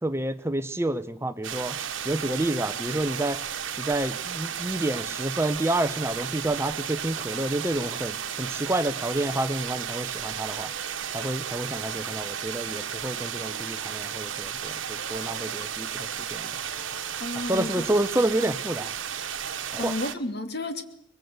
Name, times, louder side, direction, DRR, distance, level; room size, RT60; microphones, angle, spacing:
voice 1, 0.0-1.8 2.0-3.4 3.8-10.7 11.1-16.5 17.3-18.9 19.7-19.9, right 1 dB, 10° right, 1.0 m, -29 dB
sound 1, 1.4-20.1, right 8 dB, 65° right, 1.5 m, -33 dB
sound 2, 13.4-15.0 16.6-17.3, left 2 dB, 25° left, 7.6 m, -56 dB
voice 2, 17.2-17.9 19.8-20.8, left 1 dB, 50° left, 2.6 m, -31 dB
23.0 x 22.5 x 8.1 m
head